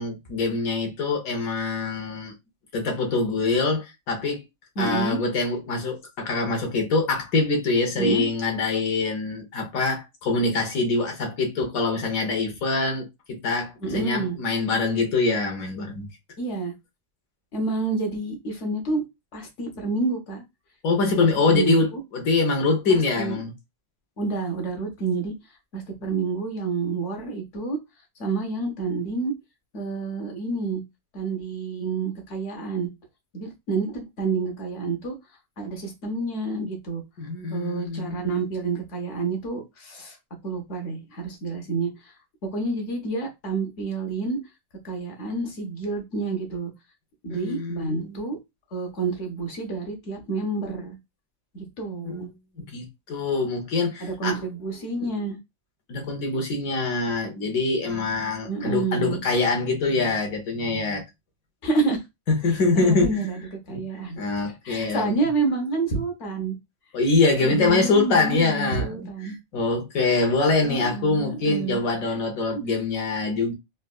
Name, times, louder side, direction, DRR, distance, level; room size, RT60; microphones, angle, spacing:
voice 1, 0.0-2.3 2.7-4.4 4.8-16.1 20.8-23.5 37.2-38.1 47.3-48.2 52.0-52.3 52.6-54.4 55.9-61.0 62.3-63.2 63.7-63.8 64.2-65.1 66.9-69.1 69.5-73.5, left 3 dB, 80° left, 1.3 m, -24 dB
voice 2, 4.8-5.2 8.0-8.3 13.8-14.4 16.4-16.7 17.5-19.0 19.3-20.4 21.0-22.0 22.9-23.4 24.2-25.3 25.7-27.8 28.2-29.3 29.7-30.8 31.1-32.9 33.3-35.2 35.6-37.0 37.5-40.2 40.4-42.1 42.5-44.4 44.8-46.7 47.2-48.4 48.7-51.0 51.5-52.3 54.0-55.4 58.5-59.2 61.6-62.0 62.7-64.2 64.6-66.6 67.4-69.4 70.6-71.8 72.1-72.2, right 3 dB, 60° left, 1.2 m, -28 dB
4.0 x 2.2 x 2.2 m
omnidirectional pair, 1.5 m